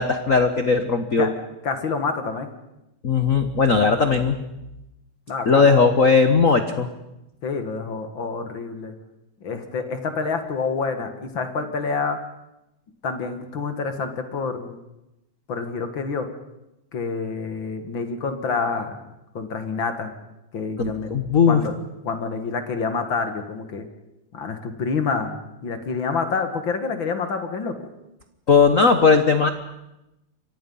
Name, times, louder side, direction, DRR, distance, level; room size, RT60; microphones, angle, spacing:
voice 1, 0.0-1.3 3.0-4.3 5.5-6.9 20.8-21.6 28.5-29.5, left 5 dB, 75° left, 8 dB, 0.7 m, -18 dB
voice 2, 1.6-2.5 5.3-5.8 7.4-8.9 9.4-12.2 13.0-14.8 15.5-16.3 16.9-19.0 19.3-20.1 20.5-21.1 21.5-21.7 22.0-23.9 24.3-27.9, left 4 dB, 45° left, 7 dB, 2.2 m, -27 dB
28.5 x 24.0 x 5.6 m, 0.93 s
omnidirectional pair, 3.4 m